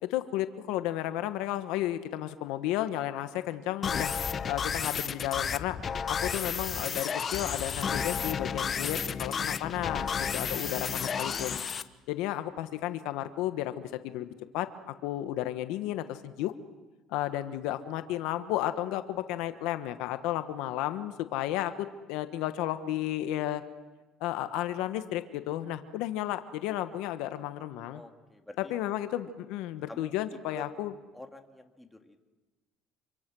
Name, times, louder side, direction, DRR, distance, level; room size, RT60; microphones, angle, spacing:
voice 1, 0.0-4.1 4.5-5.8 6.1-11.7 12.1-16.5 17.1-23.6 24.2-28.0 28.6-30.9, left 13 dB, 80° left, 10 dB, 1.2 m, -33 dB
sound 1, 3.8-11.8, left 6 dB, 35° left, 1.0 m, -32 dB
voice 2, 27.9-28.7 29.9-30.1 30.5-30.7 31.1-32.2, left 1 dB, 10° left, 4 dB, 2.1 m, -48 dB
26.5 x 25.0 x 6.2 m, 1.2 s
cardioid pair, 110°, 0 cm